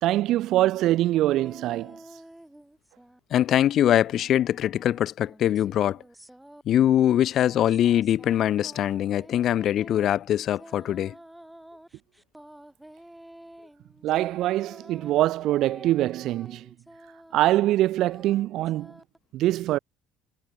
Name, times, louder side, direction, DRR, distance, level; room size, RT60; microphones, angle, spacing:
voice 1, 0.0-2.0 14.0-16.7 17.3-19.0 19.3-19.8, right 15 dB, 65° right, 0.4 m, -24 dB
sound 1, 1.1-3.2 3.5-19.2, right 1 dB, 5° right, 2.3 m, -49 dB
voice 2, 3.3-6.0 6.7-11.1, left 11 dB, 55° left, 0.3 m, -22 dB
supercardioid pair, 90°, 0 cm